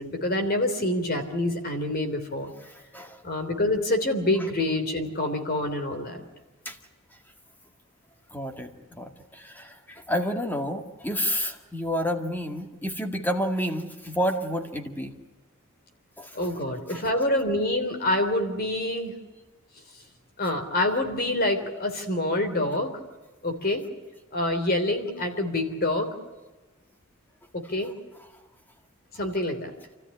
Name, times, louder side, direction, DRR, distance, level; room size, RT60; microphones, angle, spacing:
voice 1, 0.0-2.5 3.2-6.2 16.3-19.1 20.4-22.9 23.4-23.8 24.3-26.1 27.5-27.9 29.1-29.7, left 1 dB, 45° left, 6 dB, 3.3 m, -26 dB
voice 2, 2.7-3.2 6.7-6.8 8.3-15.1 16.2-16.4 16.9-17.1 28.3-28.4, equal, 10° left, 5 dB, 2.0 m, -30 dB
28.5 x 14.0 x 9.8 m, 1.2 s
head